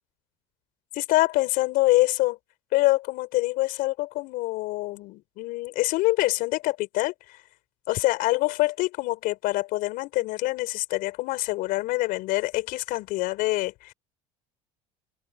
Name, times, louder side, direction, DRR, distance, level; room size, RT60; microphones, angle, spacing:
voice 1, 0.9-2.4 2.7-7.1 7.9-13.9, left 19 dB, 70° left, 6.0 m, -25 dB
supercardioid pair, 85°, 15 cm